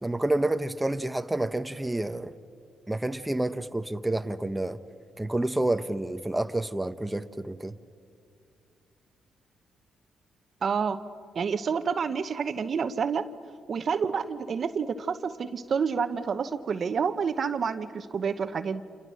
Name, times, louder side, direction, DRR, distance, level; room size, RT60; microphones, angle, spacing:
voice 1, 0.0-2.3 2.9-4.8 5.2-7.7, right 1 dB, 10° right, 8 dB, 1.0 m, -29 dB
voice 2, 10.6-11.0 11.3-13.3 13.7-18.8, right 6 dB, 55° right, 11 dB, 1.0 m, -28 dB
29.0 x 28.0 x 6.4 m, 2.3 s
cardioid pair, 65°, 0 cm